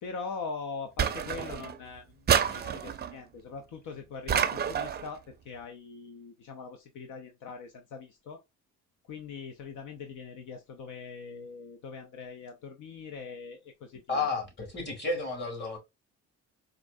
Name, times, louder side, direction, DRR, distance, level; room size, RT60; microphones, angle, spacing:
voice 1, 0.0-8.4 9.1-14.3, left 5 dB, 75° left, 0.6 m, -42 dB
sound 1, 1.0-1.8 2.3-3.1 4.3-5.1, right 8 dB, 35° right, 0.4 m, -28 dB
voice 2, 14.1-15.8, left 3 dB, 35° left, 2.4 m, -32 dB
4.3 x 2.5 x 2.6 m
cardioid pair, 90°, 30 cm